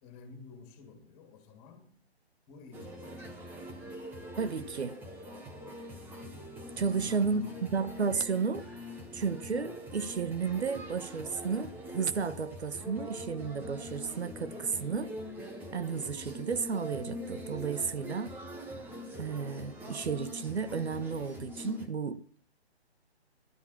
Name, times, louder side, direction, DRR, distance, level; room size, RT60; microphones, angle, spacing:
voice 1, 0.0-1.9 2.5-4.0 4.5-5.0 6.9-7.8 8.1-8.3, left 5 dB, 20° left, 3.2 m, -53 dB
sound 1, 2.7-21.9, left 1 dB, 5° right, 1.1 m, -43 dB
voice 2, 4.4-5.0 6.8-7.5 7.7-8.7 9.1-15.1 15.7-18.3 19.2-22.2, right 5 dB, 75° right, 1.2 m, -33 dB
16.5 x 12.5 x 5.9 m
hypercardioid pair, 155°, 33 cm